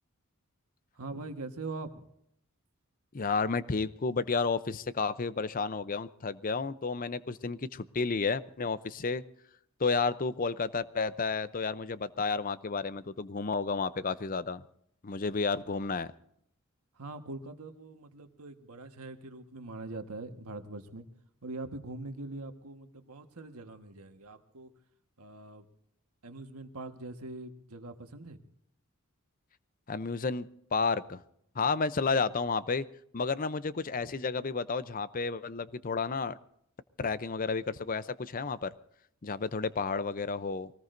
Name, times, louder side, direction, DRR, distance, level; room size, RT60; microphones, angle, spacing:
voice 1, 0.9-2.0 16.9-21.1 21.4-24.7 25.2-25.7 26.2-28.4, right 2 dB, 85° right, 6 dB, 1.5 m, -42 dB
voice 2, 3.1-9.2 9.8-14.6 15.0-16.1 29.9-31.2 31.5-32.9 33.1-36.4 37.0-38.7 39.2-40.7, left 4 dB, 40° left, 15 dB, 0.6 m, -31 dB
24.0 x 18.5 x 2.6 m, 0.72 s
head